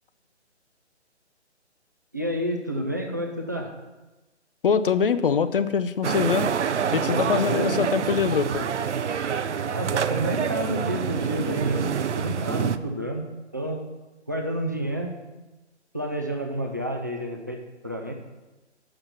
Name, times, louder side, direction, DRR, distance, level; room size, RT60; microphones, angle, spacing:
voice 1, 2.1-3.7 7.1-7.8 9.7-13.3 13.5-13.8 14.3-15.2 15.9-18.1, equal, 15° right, 2 dB, 0.3 m, -30 dB
voice 2, 4.6-6.5 6.9-8.7, left 6 dB, 55° left, 13 dB, 0.5 m, -23 dB
sound 1, 6.0-12.8, right 7 dB, 85° right, 0.6 m, -27 dB
6.9 x 5.8 x 7.0 m, 1.1 s
figure-of-eight pair, 150°, 35 cm